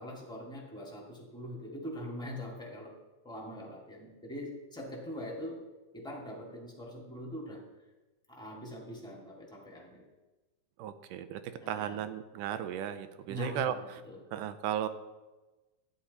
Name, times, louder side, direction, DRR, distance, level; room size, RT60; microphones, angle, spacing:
voice 1, 0.0-2.9 3.2-5.6 5.9-7.6 8.3-10.0 11.6-12.0 13.3-14.2, left 1 dB, ahead, -2 dB, 1.5 m, -42 dB
voice 2, 10.8-13.8 14.3-14.9, right 10 dB, 85° right, 11 dB, 2.3 m, -35 dB
13.0 x 9.9 x 4.2 m, 1.1 s
omnidirectional pair, 3.7 m